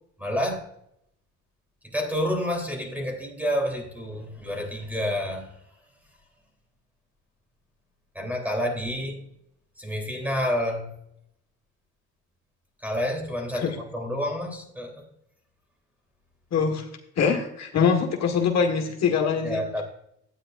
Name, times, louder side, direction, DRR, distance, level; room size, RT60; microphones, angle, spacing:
voice 1, 0.2-0.6 1.8-5.5 8.1-9.3 9.8-10.9 12.8-15.1 19.4-19.8, equal, 5° right, 2 dB, 3.3 m, -29 dB
voice 2, 16.5-16.8 17.2-19.8, left 6 dB, 60° left, 2 dB, 1.6 m, -23 dB
12.0 x 9.2 x 2.5 m, 0.76 s
cardioid pair, 90°, 30 cm